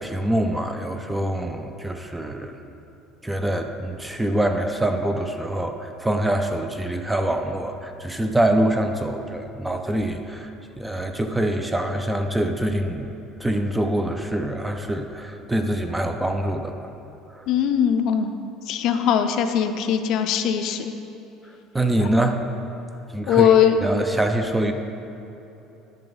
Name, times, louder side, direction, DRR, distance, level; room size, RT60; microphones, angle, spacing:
voice 1, 0.0-2.6 3.2-10.5 10.8-13.1 13.4-16.7 17.4-17.5 21.7-22.4 23.1-23.5 23.8-24.7, right 1 dB, 5° right, 6 dB, 0.4 m, -24 dB
voice 2, 17.5-18.3 18.7-20.9 22.0-22.1 23.3-23.8, left 9 dB, 55° left, 7 dB, 0.5 m, -20 dB
10.5 x 6.8 x 4.0 m, 3.0 s
cardioid pair, 160°, 0 cm